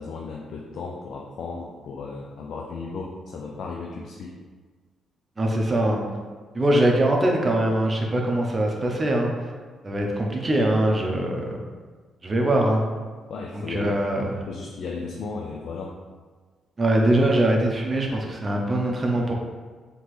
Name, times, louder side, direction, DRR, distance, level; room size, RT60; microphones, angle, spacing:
voice 1, 0.0-4.4 13.3-13.9 14.5-16.0, left 4 dB, 70° left, 0 dB, 0.4 m, -35 dB
voice 2, 5.4-6.0 6.5-9.3 9.8-11.6 12.2-12.8 13.5-14.3 16.8-19.3, right 1 dB, 30° right, 0 dB, 0.8 m, -22 dB
4.2 x 3.0 x 3.2 m, 1.5 s
cardioid pair, 90°, 0 cm